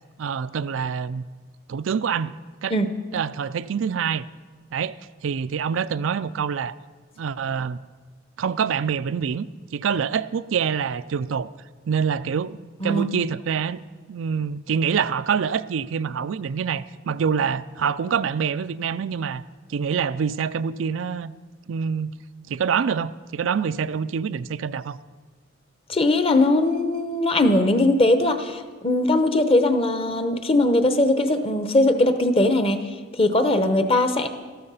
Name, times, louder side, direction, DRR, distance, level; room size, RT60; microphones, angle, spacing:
voice 1, 0.2-1.2 1.7-2.3 2.6-2.7 3.1-4.2 4.7-6.7 7.2-7.8 8.4-11.5 11.8-12.6 12.8-13.8 14.1-19.4 19.7-21.3 21.7-22.1 22.5-25.0, right 6 dB, 80° right, 13 dB, 0.4 m, -26 dB
voice 2, 25.9-32.8 33.2-34.3, left 1 dB, 30° left, 8 dB, 0.9 m, -20 dB
13.5 x 13.0 x 5.6 m, 1.4 s
head